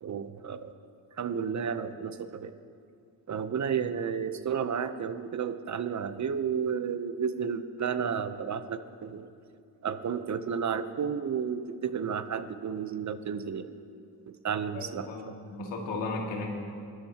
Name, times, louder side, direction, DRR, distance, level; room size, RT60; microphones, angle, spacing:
voice 1, 0.0-0.7 1.2-2.5 3.3-9.3 9.8-13.7 14.3-15.4, right 7 dB, 40° right, 11 dB, 0.8 m, -32 dB
voice 2, 14.7-16.5, left 3 dB, 90° left, -1 dB, 2.3 m, -35 dB
20.5 x 13.0 x 2.9 m, 2.4 s
cardioid pair, 70°, 43 cm